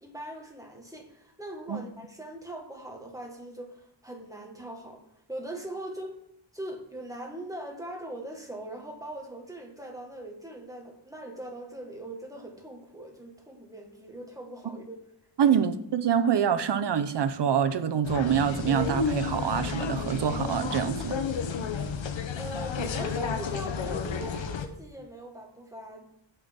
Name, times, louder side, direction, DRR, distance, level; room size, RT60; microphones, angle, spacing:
voice 1, 0.0-6.2 6.5-15.0 15.4-15.6 22.3-26.1, right 1 dB, 5° right, 1 dB, 1.7 m, -41 dB
voice 2, 15.4-21.2, right 8 dB, 60° right, 10 dB, 0.8 m, -25 dB
sound 1, 18.0-24.7, left 6 dB, 75° left, 1.0 m, -31 dB
17.0 x 5.8 x 3.7 m, 0.74 s
wide cardioid pair, 140°, 45 cm